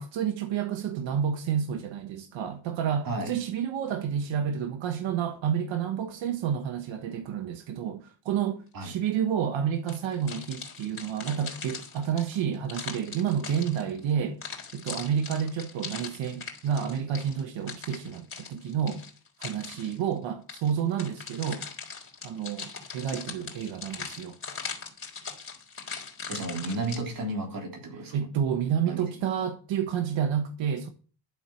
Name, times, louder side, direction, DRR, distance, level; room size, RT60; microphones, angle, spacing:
voice 1, 0.0-14.4 14.7-19.0 19.4-21.6 22.2-24.4 28.1-30.9, right 8 dB, 80° right, 1.3 m, -30 dB
sound 1, 9.9-14.0 14.4-20.0 20.5-27.0, left 5 dB, 30° left, 3.8 m, -40 dB
voice 2, 26.3-28.3 28.9-29.0, right 2 dB, 50° right, 3.7 m, -33 dB
12.0 x 7.5 x 6.3 m
cardioid pair, 155°, 45 cm